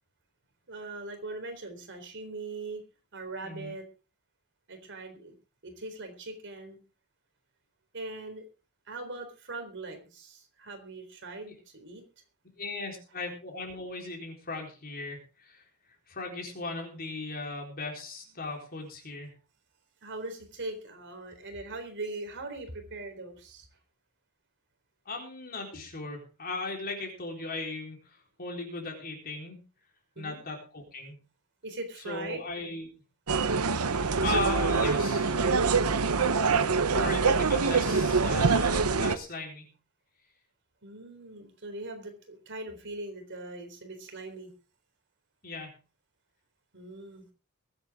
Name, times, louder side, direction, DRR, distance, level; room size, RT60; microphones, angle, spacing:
voice 1, 0.7-2.8 3.1-3.8 4.7-5.3 5.6-6.8 7.9-8.4 8.9-12.0 20.0-23.7 30.2-30.4 31.6-32.4 35.9-36.3 40.8-44.5 46.7-47.3, right 2 dB, 55° right, 6 dB, 3.9 m, -41 dB
voice 2, 3.4-3.7 12.6-15.6 16.1-19.3 25.1-29.6 30.2-31.2 32.1-32.9 34.2-35.4 36.9-39.7 45.4-45.8, left 3 dB, 45° left, 1 dB, 4.0 m, -37 dB
sound 1, 33.3-39.2, right 4 dB, 80° right, 1.0 m, -25 dB
22.5 x 8.9 x 3.7 m, 0.33 s
head